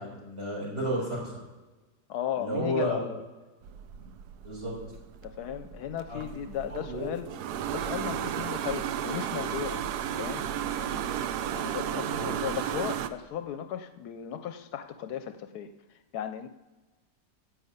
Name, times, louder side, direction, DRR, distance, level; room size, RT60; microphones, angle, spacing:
voice 1, 0.0-1.3 2.3-3.0 4.0-4.1 4.4-4.7 6.1-6.2 6.7-7.1 12.2-12.3, equal, 40° right, -3 dB, 4.5 m, -32 dB
voice 2, 2.1-3.2 5.2-7.3 7.7-10.5 11.5-16.5, left 9 dB, 75° left, 10 dB, 1.0 m, -36 dB
sound 1, 3.6-13.1, right 9 dB, 75° right, 1.1 m, -34 dB
10.5 x 6.5 x 8.0 m, 1.2 s
omnidirectional pair, 1.8 m